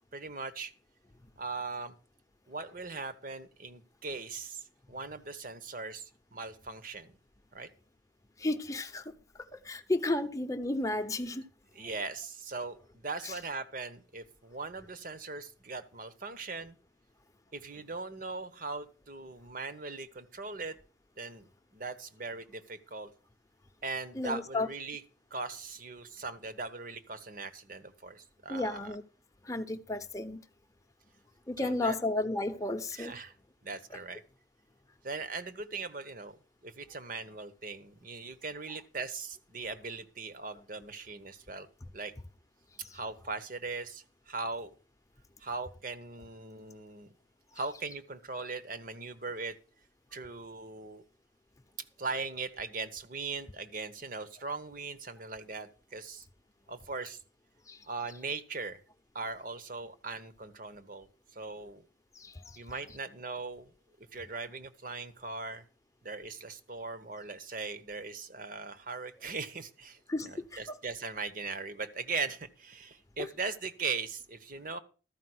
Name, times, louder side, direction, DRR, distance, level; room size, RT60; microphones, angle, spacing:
voice 1, 0.1-0.7 1.4-2.0 2.5-7.1 7.5-7.7 11.7-16.8 17.5-20.8 21.2-21.5 21.7-23.1 23.8-25.0 25.3-28.9 31.6-32.0 32.9-33.3 33.6-34.2 35.0-41.7 41.9-42.1 42.8-44.7 45.4-47.1 47.5-49.6 50.1-51.0 52.0-56.3 56.7-57.2 57.8-58.8 59.1-61.8 62.6-63.7 64.0-65.6 66.0-74.8, right 4 dB, 45° right, 1.1 m, -40 dB
voice 2, 8.4-11.4 13.2-13.3 24.1-24.7 28.5-29.0 29.4-30.5 31.5-33.2 42.8-43.0 57.7-57.9 62.1-62.6 70.1-70.5 73.2-73.3, left 2 dB, 15° left, 0.8 m, -33 dB
13.5 x 5.2 x 7.9 m
head